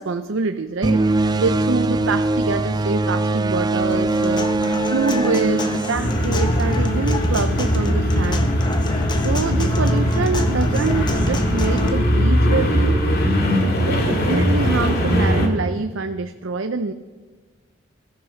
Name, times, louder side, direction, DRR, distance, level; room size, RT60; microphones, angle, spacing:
voice 1, 0.0-4.5 4.9-8.5 9.2-13.1 13.6-16.9, right 4 dB, 80° right, 8 dB, 0.6 m, -25 dB
sound 1, 0.8-6.8, right 2 dB, 20° right, 0.4 m, -22 dB
Human voice / Acoustic guitar, 3.9-11.9, left 2 dB, 20° left, 1.2 m, -30 dB
sound 2, 5.9-15.5, equal, 50° left, 2.6 m, -20 dB
21.5 x 14.0 x 4.5 m, 1.3 s
head